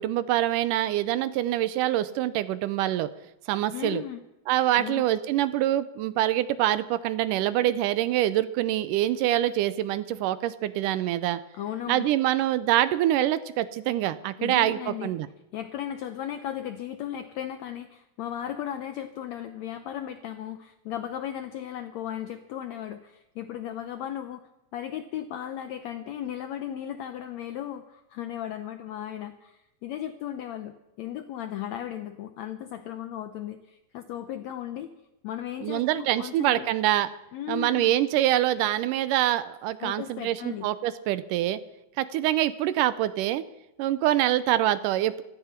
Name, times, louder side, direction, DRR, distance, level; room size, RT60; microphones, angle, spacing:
voice 1, 0.0-3.1 3.5-4.0 4.5-11.4 11.9-15.3 35.6-37.1 37.5-41.6 42.0-43.4 43.8-45.2, right 13 dB, 80° right, 15 dB, 2.1 m, -25 dB
voice 2, 3.7-4.2 4.8-5.0 11.5-12.1 14.4-15.1 15.5-34.9 35.2-36.7 37.3-37.9 39.8-40.7, left 11 dB, 80° left, 9 dB, 1.6 m, -36 dB
16.0 x 13.5 x 5.8 m, 0.90 s
omnidirectional pair, 4.0 m